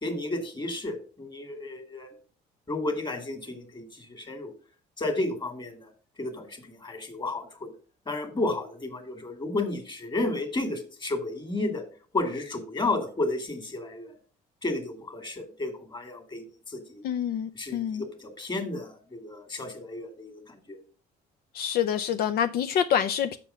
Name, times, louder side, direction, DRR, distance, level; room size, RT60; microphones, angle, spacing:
voice 1, 0.0-2.1 2.7-4.5 5.0-5.9 6.2-7.7 8.1-11.8 12.1-14.1 14.6-17.0 17.5-20.8, left 2 dB, 25° left, 2.1 m, -32 dB
voice 2, 17.0-18.1 21.5-23.4, left 9 dB, 65° left, 0.6 m, -27 dB
7.0 x 6.0 x 5.6 m
cardioid pair, 110°, 17 cm